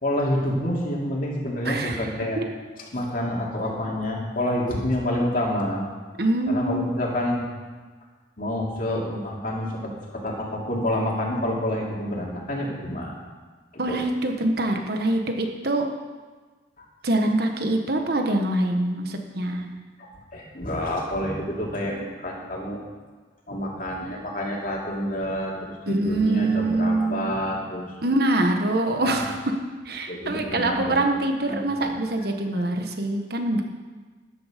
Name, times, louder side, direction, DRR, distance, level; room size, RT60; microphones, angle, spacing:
voice 1, 0.0-2.4 2.9-5.9 6.5-7.5 8.4-13.1 13.9-14.0 16.8-16.9 20.0-22.8 23.5-27.9 29.0-29.1 30.1-31.0 31.5-32.0, left 1 dB, 50° left, -2 dB, 2.7 m, -28 dB
voice 2, 1.6-2.0 2.4-2.5 6.2-6.8 13.8-15.9 17.0-19.7 25.9-27.3 28.0-29.5 29.8-33.6, right 2 dB, 55° right, 4 dB, 1.3 m, -24 dB
13.0 x 11.0 x 5.1 m, 1.4 s
head